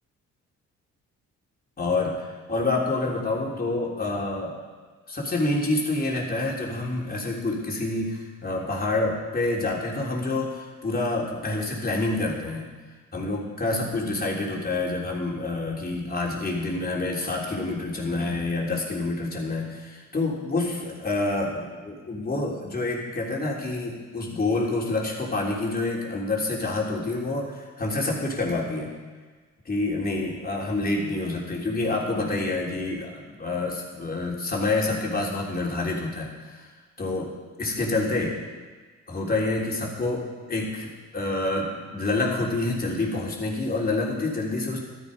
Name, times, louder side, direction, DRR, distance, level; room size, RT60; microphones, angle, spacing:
voice 1, 1.8-4.6 5.1-12.7 13.1-28.9 29.7-36.7 37.0-38.4 39.1-44.8, left 2 dB, 30° left, -2 dB, 3.5 m, -27 dB
13.0 x 13.0 x 5.3 m, 1.4 s
cardioid pair, 90°, 30 cm